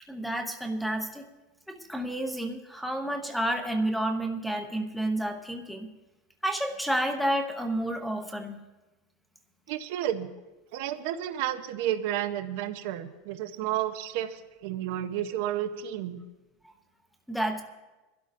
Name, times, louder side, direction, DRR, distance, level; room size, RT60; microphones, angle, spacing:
voice 1, 0.1-1.3 1.7-5.9 6.4-8.6 16.6-16.7 17.3-17.6, right 1 dB, ahead, 5 dB, 0.7 m, -30 dB
voice 2, 9.7-10.3 10.7-16.3, right 12 dB, 55° right, 9 dB, 0.7 m, -31 dB
24.5 x 12.0 x 2.6 m, 1.1 s
supercardioid pair, 180°, 0 cm